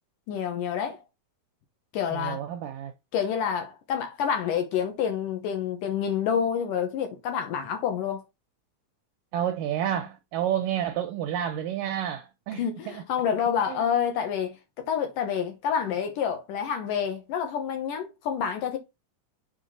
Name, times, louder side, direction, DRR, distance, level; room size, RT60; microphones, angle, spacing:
voice 1, 0.3-1.0 1.9-2.4 3.1-8.3 12.5-18.8, left 8 dB, 65° left, 2.3 m, -28 dB
voice 2, 2.1-2.9 9.3-13.0 13.7-13.8, right 10 dB, 85° right, 2.0 m, -30 dB
7.3 x 5.2 x 4.2 m
omnidirectional pair, 4.6 m